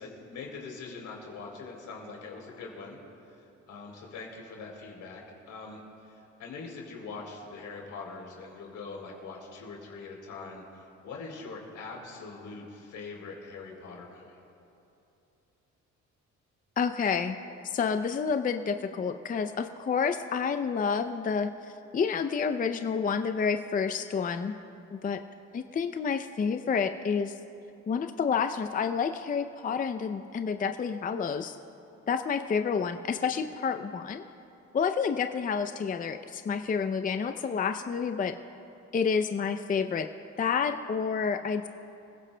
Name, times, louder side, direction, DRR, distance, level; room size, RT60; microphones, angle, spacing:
voice 1, 0.0-3.0 3.4-5.2 5.5-14.3, left 4 dB, 80° left, -1 dB, 3.4 m, -43 dB
voice 2, 16.8-17.4 17.7-21.5 21.9-24.6 24.9-25.2 25.5-27.3 27.9-31.6 32.1-34.2 34.7-38.3 38.9-40.1 40.4-41.7, left 6 dB, 30° left, 8 dB, 0.5 m, -29 dB
26.5 x 16.0 x 2.2 m, 2.8 s
cardioid pair, 90°, 30 cm